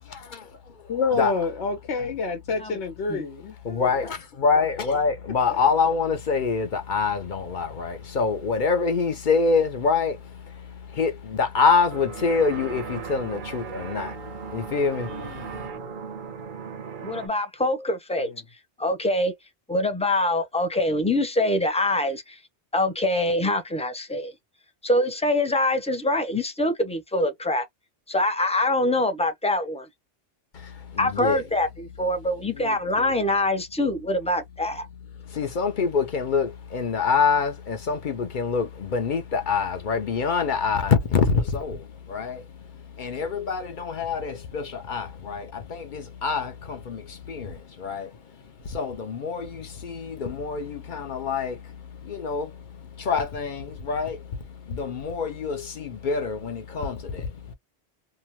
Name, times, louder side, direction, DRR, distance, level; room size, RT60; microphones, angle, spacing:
voice 1, 0.9-4.1 5.5-5.6 15.1-15.8 18.2-18.4 32.5-33.1, left 4 dB, 85° left, 1.1 m, -29 dB
voice 2, 3.6-15.5 30.5-31.4 35.2-42.5 42.8-57.5, left 5 dB, 50° left, 0.7 m, -26 dB
sound 1, 11.9-17.3, right 6 dB, 55° right, 0.7 m, -37 dB
voice 3, 17.0-18.3 18.8-19.3 19.7-22.4 22.7-24.3 24.8-27.6 28.1-29.9 31.0-34.9, left 1 dB, 10° left, 0.3 m, -24 dB
2.8 x 2.1 x 2.9 m
omnidirectional pair, 1.1 m